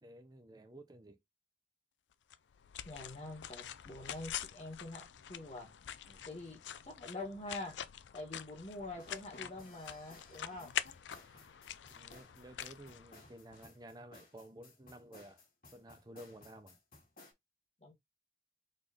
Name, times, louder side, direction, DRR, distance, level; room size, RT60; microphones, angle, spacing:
voice 1, 0.0-1.2 6.1-6.3 11.2-11.6 11.9-15.4 15.7-16.8, right 1 dB, 20° right, 0.5 m, -54 dB
sound 1, 2.3-13.6, left 10 dB, 90° left, 0.4 m, -45 dB
voice 2, 2.8-5.7 6.3-7.8 8.1-10.7 17.8-17.9, left 2 dB, 35° left, 1.5 m, -45 dB
sound 2, 9.0-17.3, left 2 dB, 50° left, 1.9 m, -59 dB
4.1 x 3.2 x 3.4 m
head